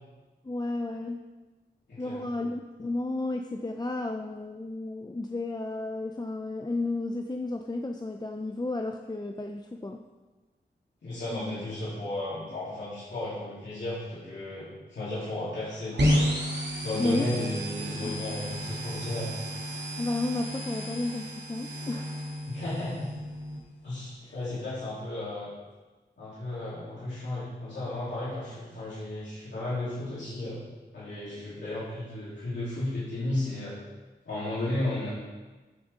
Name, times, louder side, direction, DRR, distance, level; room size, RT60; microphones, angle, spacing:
voice 1, 0.4-1.2 2.0-10.0 11.3-11.6 17.0-17.3 18.0-18.2 20.0-22.2 24.2-24.3, left 2 dB, 25° left, 4 dB, 0.6 m, -32 dB
voice 2, 1.9-2.3 11.0-16.4 16.8-19.3 22.4-23.1 23.8-25.5 26.2-30.6 30.9-33.8 34.3-35.1, left 1 dB, 90° left, -12 dB, 3.5 m, -34 dB
sound 1, 16.0-23.6, equal, 70° right, 2.5 m, -31 dB
13.5 x 7.0 x 3.8 m, 1.2 s
cardioid pair, 50°, 18 cm